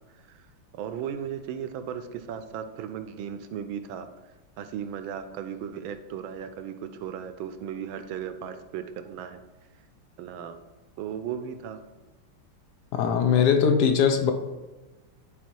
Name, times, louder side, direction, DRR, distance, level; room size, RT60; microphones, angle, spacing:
voice 1, 0.1-0.5 0.7-4.1 4.6-9.4 10.2-10.6 11.0-11.8, right 8 dB, 75° right, 9 dB, 1.3 m, -36 dB
voice 2, 12.9-14.3, left 7 dB, 65° left, 7 dB, 1.0 m, -21 dB
10.5 x 4.2 x 4.5 m, 1.2 s
omnidirectional pair, 2.4 m